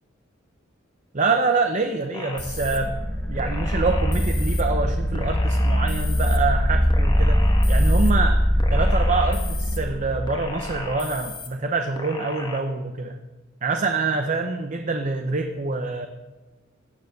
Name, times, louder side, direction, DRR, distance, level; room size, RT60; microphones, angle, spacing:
voice 1, 1.1-3.0 3.3-8.4 8.7-13.2 13.6-16.1, right 3 dB, 40° right, 6 dB, 0.7 m, -26 dB
sound 1, 2.1-2.8 3.4-4.6 5.1-6.4 6.9-8.1 8.6-9.8 10.3-11.5 12.0-12.6, left 4 dB, 25° left, 1.3 m, -36 dB
sound 2, 2.4-11.2, equal, 5° left, 0.7 m, -22 dB
17.0 x 7.0 x 6.6 m, 1.1 s
head